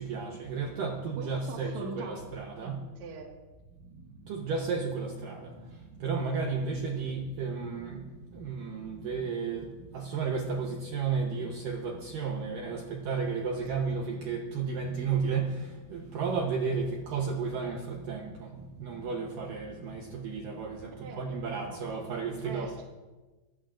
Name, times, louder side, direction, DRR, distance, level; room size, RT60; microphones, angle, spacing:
voice 1, 0.0-2.8 4.3-5.5 6.0-8.0 8.3-18.5 18.8-22.8, right 5 dB, 85° right, 1 dB, 1.9 m, -33 dB
voice 2, 1.2-2.2 2.6-3.3 21.0-21.2 21.5-21.7 22.4-22.8, right 4 dB, 55° right, 0 dB, 2.3 m, -42 dB
21.5 x 16.0 x 2.6 m, 1.2 s
omnidirectional pair, 5.4 m